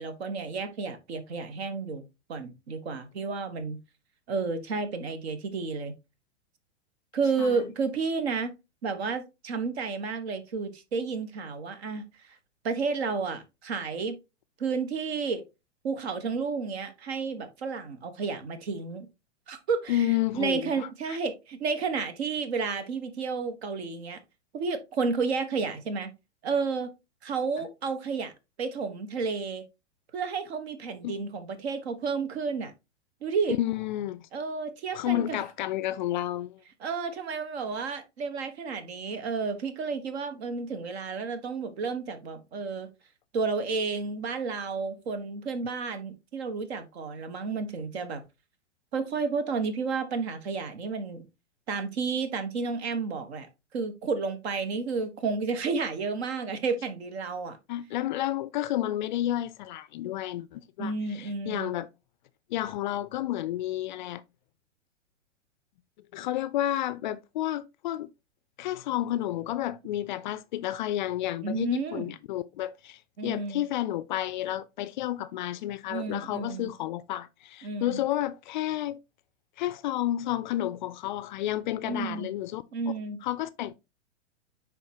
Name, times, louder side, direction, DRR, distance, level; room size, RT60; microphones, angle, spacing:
voice 1, 0.0-2.0 2.3-3.8 4.3-5.9 7.1-8.5 8.8-12.0 12.6-14.2 14.6-15.4 15.8-19.1 19.5-20.0 20.3-24.2 24.5-26.1 26.4-26.9 27.2-28.3 28.6-29.6 30.1-32.7 33.2-33.6 34.3-35.4 36.8-42.9 43.3-48.2 48.9-51.2 51.7-57.6 60.8-61.8 71.4-72.1 73.2-73.6 75.9-76.7 77.6-78.0 81.8-82.3 82.7-83.2, right 4 dB, 60° right, 1.4 m, -31 dB
voice 2, 19.9-21.2 31.0-31.2 33.5-34.3 34.9-36.6 57.7-61.9 62.5-64.2 66.1-68.1 68.6-79.0 79.6-82.6 83.2-83.8, left 13 dB, 40° left, 0.4 m, -31 dB
9.6 x 3.7 x 2.9 m
hypercardioid pair, 110°, 36 cm